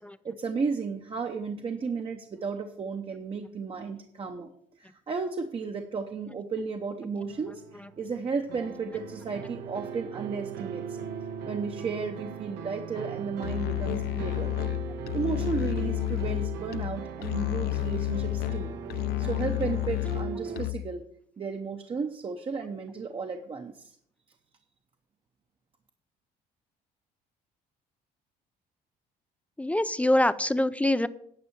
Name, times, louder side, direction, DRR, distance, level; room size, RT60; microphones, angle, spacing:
voice 1, 0.2-4.5 4.8-11.0 11.5-14.5 15.1-21.0 21.4-24.0, right 5 dB, 35° right, 4 dB, 0.8 m, -34 dB
sound 1, 7.2-20.6, right 7 dB, 80° right, 1.1 m, -39 dB
Musical instrument, 13.4-21.0, left 19 dB, 75° left, 0.4 m, -31 dB
voice 2, 29.6-31.1, left 1 dB, 10° left, 14 dB, 0.4 m, -25 dB
9.9 x 5.5 x 7.1 m, 0.67 s
cardioid pair, 110°, 17 cm